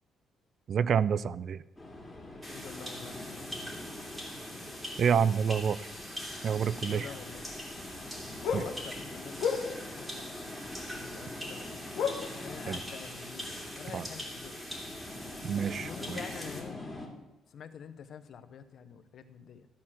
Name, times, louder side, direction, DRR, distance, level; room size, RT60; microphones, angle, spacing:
voice 1, 0.7-1.6 5.0-5.8 6.4-7.1 8.5-8.6 12.7-12.8 13.9-14.0 15.4-16.2, right 7 dB, 50° right, 18 dB, 0.3 m, -28 dB
sound 1, 1.8-17.1, left 2 dB, 5° left, 2.3 m, -44 dB
sound 2, 2.4-16.6, equal, 10° right, 2.6 m, -43 dB
voice 2, 2.5-3.5 6.8-7.4 8.5-10.3 10.9-11.9 12.3-14.6 15.8-16.9 17.5-19.7, left 7 dB, 60° left, 10 dB, 0.8 m, -47 dB
sound 3, 6.8-7.7 7.9-10.1 10.8-11.3 11.5-11.7 11.9-12.9 13.2-13.3 13.9-14.0, left 6 dB, 85° left, 1.1 m, -33 dB
13.0 x 4.3 x 7.4 m, 1.0 s
cardioid pair, 110°, 0 cm